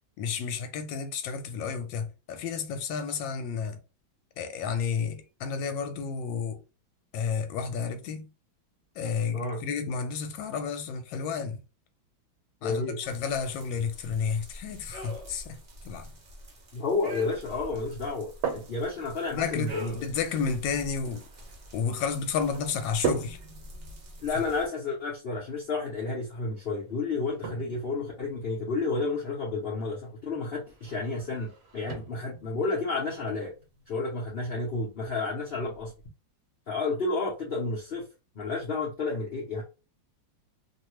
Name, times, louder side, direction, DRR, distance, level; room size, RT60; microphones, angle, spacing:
voice 1, 0.2-3.8 4.4-6.6 7.1-8.3 9.0-11.6 12.6-15.6 15.8-16.1 19.3-21.2 21.7-23.4, left 6 dB, 80° left, 1.3 m, -31 dB
voice 2, 12.6-13.0 16.7-19.9 24.2-33.5 33.9-35.9 36.7-38.0 38.3-39.6, left 3 dB, 55° left, 0.6 m, -31 dB
sound 1, 13.0-24.7, equal, 45° right, 0.8 m, -46 dB
sound 2, 18.0-36.1, right 6 dB, 80° right, 1.4 m, -42 dB
3.1 x 2.2 x 3.0 m
omnidirectional pair, 2.1 m